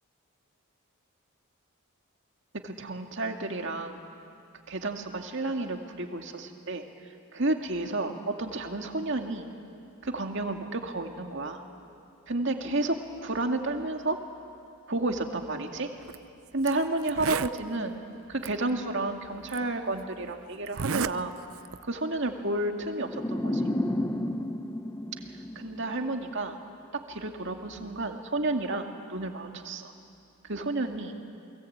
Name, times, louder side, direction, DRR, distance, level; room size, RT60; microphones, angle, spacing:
voice 1, 2.6-4.0 4.7-6.8 7.3-9.5 10.0-11.6 12.3-14.2 14.9-15.9 16.5-18.0 18.3-21.3 21.8-23.6 25.6-26.6 26.9-29.9 30.5-31.1, right 2 dB, 55° right, 4 dB, 2.1 m, -31 dB
Zipper (clothing), 16.0-16.2 16.7-16.8 17.0-17.6 18.4-18.5 19.5-19.6 20.7-21.2 21.5-21.8, right 6 dB, 75° right, 0.6 m, -31 dB
sound 1, 23.0-26.2, left 1 dB, 15° left, 0.8 m, -31 dB
30.0 x 22.0 x 8.7 m, 2.6 s
head